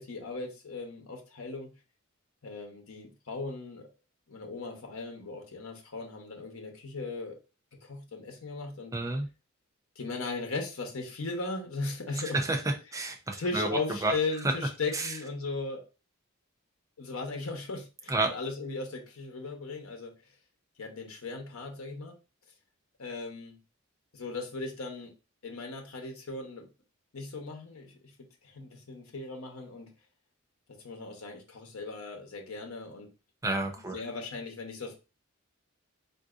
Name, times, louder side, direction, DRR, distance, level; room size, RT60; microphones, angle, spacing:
voice 1, 0.0-1.7 2.4-3.9 4.3-7.4 7.8-8.9 10.0-12.4 13.4-15.8 17.0-20.1 20.8-22.2 23.0-23.6 24.1-25.1 25.4-26.7 27.1-28.0 28.4-29.9 30.7-33.1 33.9-35.0, left 3 dB, 85° left, 0.8 m, -37 dB
voice 2, 8.9-9.3 12.2-12.6 12.9-14.1 14.9-15.1 18.1-18.3 33.4-34.0, right 2 dB, 15° right, 0.5 m, -30 dB
3.7 x 2.6 x 2.4 m
head